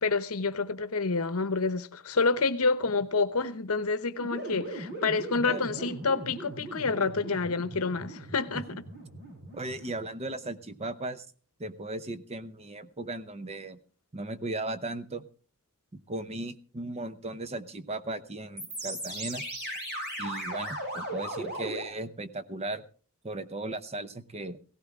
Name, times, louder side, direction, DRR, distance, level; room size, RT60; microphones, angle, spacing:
voice 1, 0.0-8.7, left 4 dB, 75° left, 0.9 m, -28 dB
sound 1, 4.2-10.3 18.6-21.8, right 1 dB, 50° right, 7.2 m, -38 dB
voice 2, 5.4-5.9 9.5-11.3 11.6-13.8 14.1-15.2 15.9-19.4 20.2-22.8 23.2-24.6, right 2 dB, 30° right, 0.7 m, -37 dB
17.0 x 15.0 x 3.6 m
head